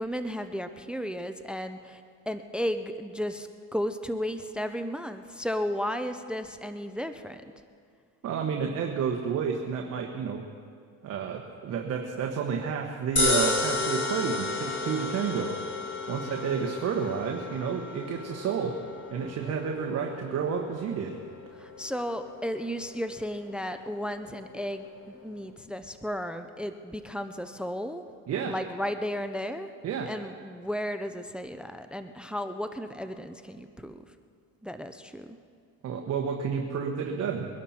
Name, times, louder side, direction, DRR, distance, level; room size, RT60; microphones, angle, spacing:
voice 1, 0.0-7.4 21.5-28.1 28.4-29.7 30.0-34.1 34.6-35.4, equal, 5° right, 9 dB, 0.6 m, -34 dB
voice 2, 8.2-10.4 11.0-15.6 16.1-18.8 19.1-21.2 28.3-28.5 29.8-30.1 35.8-37.5, right 6 dB, 50° right, 2 dB, 1.3 m, -30 dB
sound 1, 13.2-25.5, left 3 dB, 35° left, 3.3 m, -33 dB
22.5 x 12.0 x 4.3 m, 2.2 s
cardioid pair, 115°, 32 cm